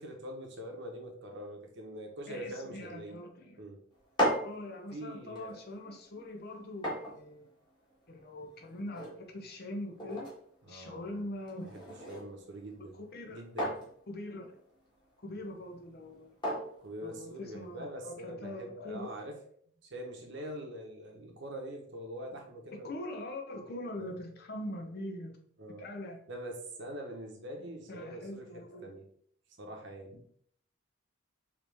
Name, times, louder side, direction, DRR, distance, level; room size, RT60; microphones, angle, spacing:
voice 1, 0.0-3.1 3.6-3.8 4.9-5.6 10.6-11.2 11.7-13.0 13.3-13.8 16.8-19.4 19.7-22.9 24.0-24.1 25.6-25.8 26.3-29.1 29.6-30.2, right 1 dB, 65° right, 1 dB, 1.1 m, -44 dB
voice 2, 2.3-3.6 4.4-7.5 8.1-10.3 10.7-11.7 12.9-13.4 14.1-14.6 15.2-16.3 17.0-19.1 22.7-25.4 25.8-26.2 27.9-29.0, left 1 dB, 55° left, 3 dB, 0.7 m, -42 dB
sound 1, 3.9-17.8, equal, 25° left, 1.7 m, -40 dB
4.8 x 3.1 x 3.4 m, 0.64 s
head